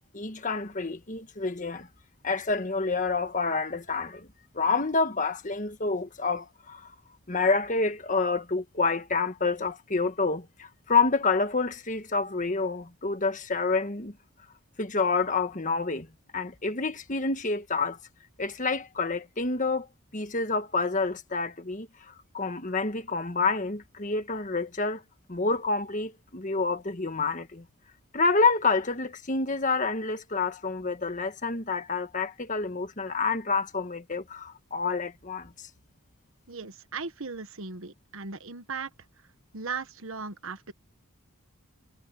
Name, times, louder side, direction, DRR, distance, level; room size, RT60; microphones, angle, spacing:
voice 1, 0.0-1.9 2.2-4.3 4.5-6.9 7.3-14.2 14.8-16.1 16.3-18.0 18.4-19.9 20.1-25.0 25.3-27.6 28.1-35.7, left 4 dB, 35° left, 1.5 m, -28 dB
voice 2, 36.5-38.9 39.5-40.7, right 4 dB, 70° right, 1.4 m, -37 dB
head